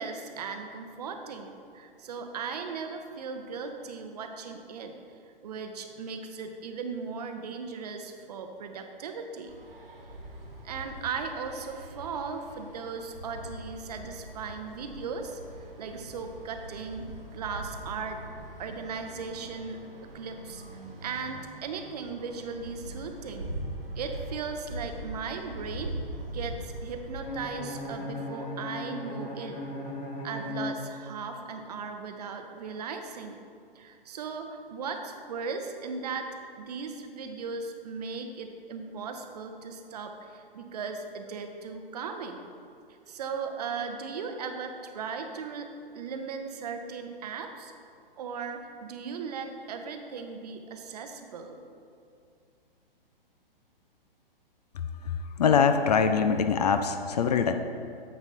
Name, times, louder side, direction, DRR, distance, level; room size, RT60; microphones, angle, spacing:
voice 1, 0.0-5.0 5.4-9.5 10.6-15.4 15.8-18.2 18.6-23.6 24.0-25.9 26.3-29.6 30.2-33.4 33.7-36.3 36.5-42.4 43.1-45.7 45.9-47.7 48.2-51.6, right 5 dB, 45° right, 6 dB, 0.7 m, -37 dB
sound 1, 9.4-27.8, right 1 dB, 80° right, 1.5 m, -42 dB
Bowed string instrument, 27.2-31.3, left 2 dB, 25° left, 1.6 m, -37 dB
voice 2, 55.0-57.5, left 6 dB, 45° left, 8 dB, 0.4 m, -23 dB
9.4 x 7.2 x 2.7 m, 2.4 s
figure-of-eight pair, 125°, 29 cm